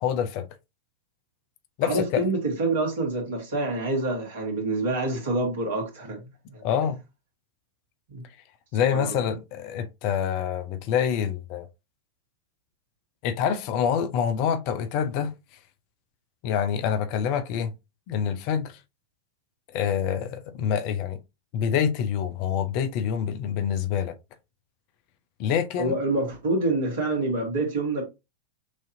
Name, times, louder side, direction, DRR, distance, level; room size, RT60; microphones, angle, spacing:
voice 1, 0.0-0.5 1.8-2.3 6.6-7.0 8.7-11.7 13.2-15.3 16.4-17.7 18.1-18.8 19.7-21.2 21.5-24.1 25.4-25.9, left 8 dB, 45° left, 0.6 m, -26 dB
voice 2, 1.8-6.2 6.5-6.6 8.1-8.2 8.9-9.3 25.8-28.0, right 2 dB, 55° right, 2.1 m, -27 dB
6.2 x 2.8 x 2.7 m
figure-of-eight pair, 90°, 0 cm